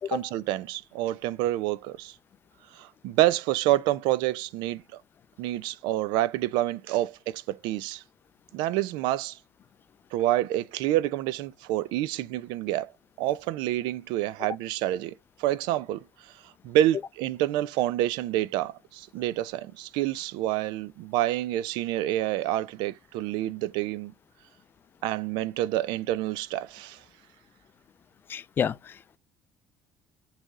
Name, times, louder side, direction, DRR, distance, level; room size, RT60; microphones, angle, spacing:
voice 1, 0.1-2.1 2.7-4.8 5.4-8.0 8.5-9.4 10.1-12.9 13.2-15.1 15.4-16.0 16.6-24.1 25.0-27.0, right 14 dB, 85° right, 0.6 m, -28 dB
voice 2, 28.3-29.2, left 8 dB, 30° left, 0.3 m, -30 dB
9.1 x 3.4 x 3.6 m
cardioid pair, 155°, 8 cm